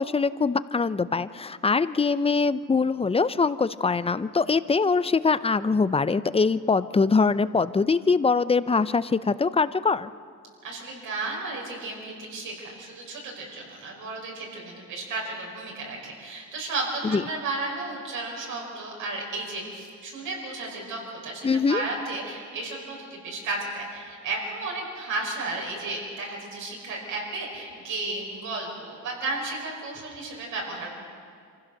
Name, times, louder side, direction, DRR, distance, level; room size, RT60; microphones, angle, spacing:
voice 1, 0.0-10.1 17.1-17.2 21.4-21.8, left 4 dB, 20° left, 15 dB, 0.5 m, -23 dB
voice 2, 10.6-30.9, right 3 dB, 85° right, -2 dB, 5.5 m, -33 dB
25.5 x 15.5 x 6.6 m, 2.2 s
cardioid pair, 90°, 30 cm